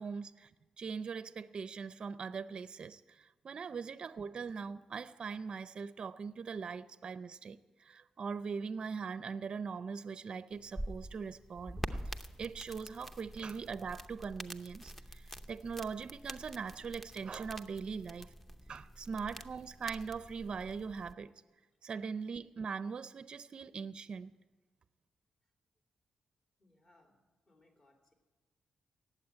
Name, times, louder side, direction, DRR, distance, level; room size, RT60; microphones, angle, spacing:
voice 1, 0.0-18.3 18.7-21.3 21.8-24.4, right 5 dB, 50° right, 14 dB, 0.5 m, -41 dB
sound 1, 10.5-21.1, equal, 10° left, 0.7 m, -46 dB
voice 2, 26.6-28.1, left 2 dB, 35° left, 1 dB, 3.2 m, -69 dB
18.5 x 7.7 x 8.7 m, 1.3 s
cardioid pair, 100°, 2 cm